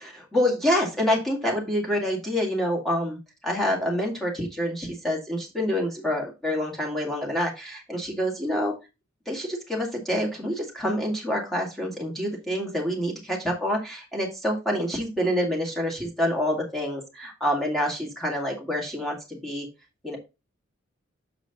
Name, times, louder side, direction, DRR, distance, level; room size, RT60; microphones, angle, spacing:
voice 1, 0.0-8.7 9.3-19.7 20.0-20.2, equal, ahead, -2 dB, 2.0 m, -27 dB
6.9 x 5.0 x 3.9 m, 0.26 s
head